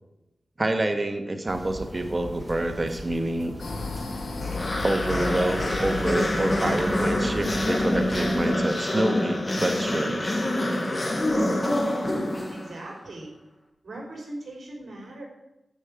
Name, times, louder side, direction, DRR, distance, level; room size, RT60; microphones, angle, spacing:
voice 1, 0.6-3.6 4.8-10.3, right 1 dB, 35° right, 7 dB, 1.5 m, -27 dB
sound 1, 1.5-8.5, equal, 10° right, 1.5 m, -39 dB
sound 2, 3.6-8.6, left 3 dB, 85° left, 2.1 m, -35 dB
sound 3, 4.4-12.9, left 1 dB, 35° left, 2.2 m, -26 dB
voice 2, 11.9-12.2 12.5-13.3 13.8-15.2, right 1 dB, 70° right, -1 dB, 3.7 m, -39 dB
10.0 x 5.5 x 8.2 m, 0.90 s
cardioid pair, 60°, 0 cm